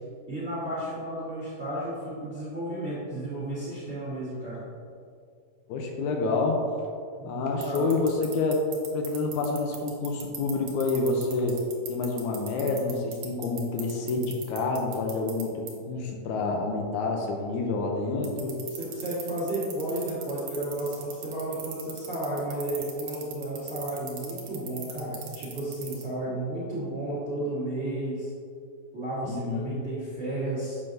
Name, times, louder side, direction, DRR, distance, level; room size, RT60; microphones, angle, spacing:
voice 1, 0.3-4.6 7.2-7.9 18.8-28.3 28.9-30.8, right 1 dB, 35° right, -10 dB, 1.1 m, -33 dB
voice 2, 5.7-6.6 7.3-11.6 11.9-18.6 29.2-29.8, left 3 dB, 80° left, 1 dB, 1.8 m, -28 dB
sound 1, 7.6-15.4 15.7-15.8 18.2-26.0, right 10 dB, 70° right, 2.2 m, -37 dB
7.5 x 5.9 x 2.6 m, 2.3 s
omnidirectional pair, 3.8 m